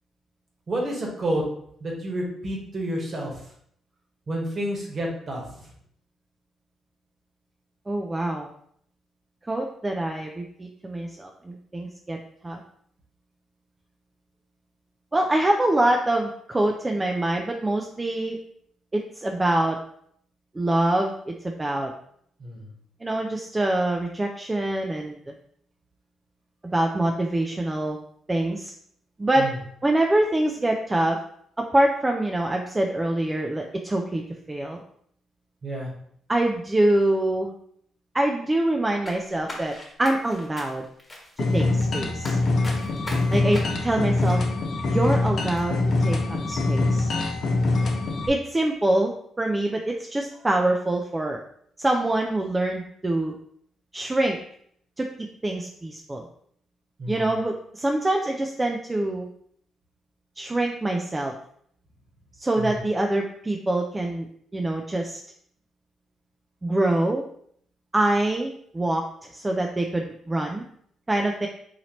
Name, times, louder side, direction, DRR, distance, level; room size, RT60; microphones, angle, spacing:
voice 1, 0.7-1.4 1.8-3.4 4.3-5.7 22.4-22.7 29.4-29.6 35.6-35.9 43.1-43.4 57.0-57.3 62.6-62.8, right 1 dB, 45° right, -1 dB, 1.3 m, -30 dB
voice 2, 7.9-8.5 9.5-12.2 12.4-12.6 15.1-18.4 18.9-19.8 20.5-21.9 23.0-25.2 26.7-28.0 28.3-28.7 29.2-29.5 29.8-31.2 31.6-34.2 34.5-34.8 36.3-37.5 38.1-39.7 40.0-40.9 41.5-42.4 43.3-44.4 44.9-46.2 46.5-47.1 48.3-51.4 51.8-53.4 53.9-54.4 55.0-56.2 57.1-59.3 60.4-61.3 62.4-64.3 64.5-65.2 66.6-67.2 67.9-69.0 69.3-70.6 71.1-71.5, right 1 dB, 20° right, 2 dB, 0.3 m, -25 dB
sound 1, 39.0-45.2 45.5-45.7, left 1 dB, 20° left, 1.3 m, -41 dB
sound 2, 41.4-48.3, left 2 dB, 55° left, 0.7 m, -24 dB
4.1 x 2.8 x 3.0 m, 0.67 s
cardioid pair, 90°, 0 cm